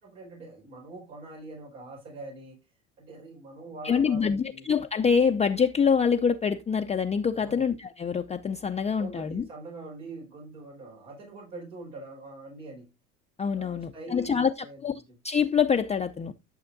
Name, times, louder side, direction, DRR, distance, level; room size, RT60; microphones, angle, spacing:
voice 1, 0.0-2.6 3.0-4.7 7.4-7.6 9.0-12.9 13.5-15.2, right 2 dB, 85° right, 4.8 m, -43 dB
voice 2, 3.8-9.5 13.4-14.5 14.8-14.9 15.2-16.3, left 6 dB, 20° left, 0.5 m, -25 dB
11.5 x 6.5 x 2.6 m
hypercardioid pair, 80°, 37 cm